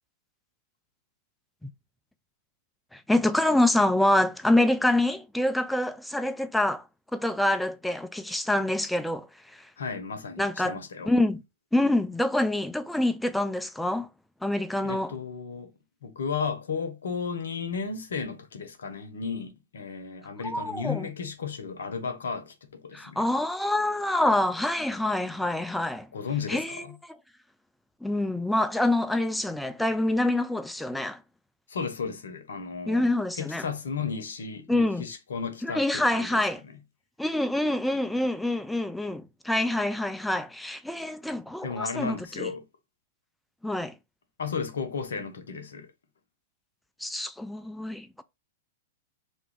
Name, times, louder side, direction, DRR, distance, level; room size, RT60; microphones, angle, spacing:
voice 1, 2.9-6.8 7.1-9.3 10.4-10.8 11.1-11.4 11.7-14.1 14.4-15.1 20.4-21.1 22.9-26.1 26.5-26.8 28.0-31.2 32.9-33.7 34.7-35.1 35.6-36.6 37.2-42.5 43.6-43.9 47.0-48.2, left 1 dB, 5° left, 0.3 m, -26 dB
voice 2, 9.8-11.1 14.8-15.7 16.0-23.2 26.1-26.9 31.7-33.1 33.4-36.4 41.6-42.6 44.4-45.9, left 5 dB, 75° left, 0.7 m, -34 dB
2.6 x 2.3 x 3.7 m
hypercardioid pair, 105°, 0 cm